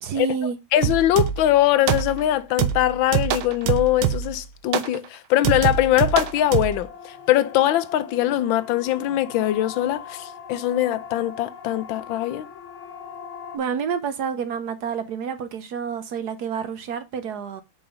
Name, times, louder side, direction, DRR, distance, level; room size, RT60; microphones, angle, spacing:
voice 1, 0.0-0.6 13.5-17.6, right 7 dB, 60° right, 1.2 m, -28 dB
voice 2, 0.7-12.5, left 13 dB, 75° left, 1.4 m, -22 dB
sound 1, 0.8-1.5 1.9-2.3 2.6-4.4 4.7-5.0 5.4-6.8, right 9 dB, 90° right, 1.6 m, -24 dB
Siren, 6.0-13.6, left 7 dB, 60° left, 1.9 m, -41 dB
5.1 x 4.8 x 5.3 m
omnidirectional pair, 2.2 m